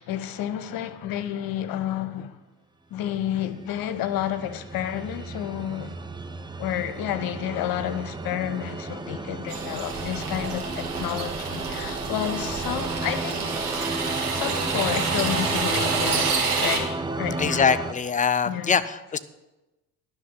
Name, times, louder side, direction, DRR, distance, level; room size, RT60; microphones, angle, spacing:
voice 1, 0.0-2.4 2.9-6.0 6.6-13.5 14.3-16.3 16.6-17.7 18.4-18.8, left 11 dB, 50° left, 1.0 m, -30 dB
sound 1, 3.6-17.9, right 3 dB, 10° right, 0.8 m, -33 dB
sound 2, 9.5-16.8, right 5 dB, 85° right, 1.6 m, -28 dB
voice 2, 17.4-19.2, left 6 dB, 20° left, 0.6 m, -23 dB
10.5 x 6.1 x 8.3 m
figure-of-eight pair, 55°, 45 cm